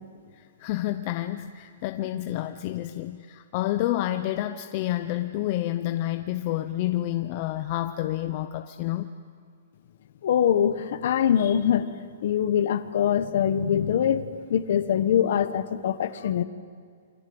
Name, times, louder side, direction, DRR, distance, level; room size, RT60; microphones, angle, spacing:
voice 1, 0.6-9.1, left 14 dB, 25° left, 7 dB, 0.6 m, -29 dB
voice 2, 10.2-11.9 12.2-14.2 14.5-16.4, left 9 dB, 45° left, 12 dB, 1.2 m, -23 dB
28.5 x 25.0 x 8.0 m, 2.2 s
hypercardioid pair, 180°, 0 cm